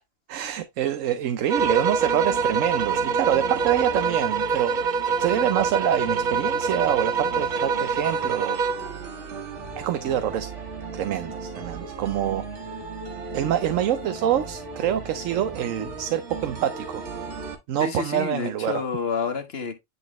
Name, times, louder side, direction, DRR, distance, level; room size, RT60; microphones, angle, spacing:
voice 1, 0.3-4.9 5.2-8.6 9.8-10.5 10.9-12.4 13.3-17.0 17.7-18.8, right 10 dB, 85° right, 1.0 m, -26 dB
sound 1, 1.5-8.9, right 5 dB, 50° right, 0.6 m, -25 dB
sound 2, 1.6-17.6, right 4 dB, 65° right, 1.7 m, -37 dB
voice 2, 17.8-19.8, left 5 dB, 55° left, 1.5 m, -29 dB
9.9 x 4.0 x 3.0 m
omnidirectional pair, 1.3 m